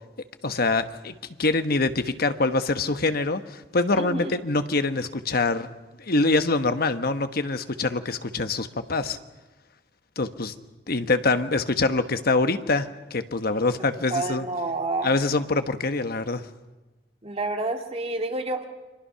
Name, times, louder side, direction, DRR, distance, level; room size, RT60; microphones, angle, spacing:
voice 1, 0.4-5.7 6.0-9.2 10.2-10.5 10.9-14.5 15.0-16.4, left 3 dB, 55° left, 9 dB, 1.2 m, -25 dB
voice 2, 4.0-4.4 14.1-15.2 17.2-18.6, right 2 dB, 35° right, 4 dB, 2.3 m, -29 dB
29.5 x 23.5 x 5.8 m, 1.1 s
head